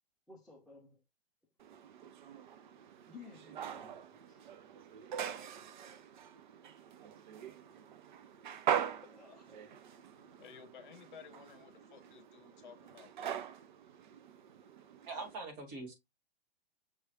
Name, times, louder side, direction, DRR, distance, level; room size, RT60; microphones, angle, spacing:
voice 1, 0.3-1.0 3.1-4.4 7.7-7.8 9.0-9.7, left 4 dB, ahead, 0.6 m, -56 dB
sound 1, 1.6-15.4, right 9 dB, 50° right, 0.6 m, -42 dB
voice 2, 10.2-13.4, left 7 dB, 50° left, 1.0 m, -55 dB
voice 3, 15.1-15.9, right 3 dB, 30° right, 1.8 m, -42 dB
6.0 x 3.1 x 2.8 m
figure-of-eight pair, 115°, 31 cm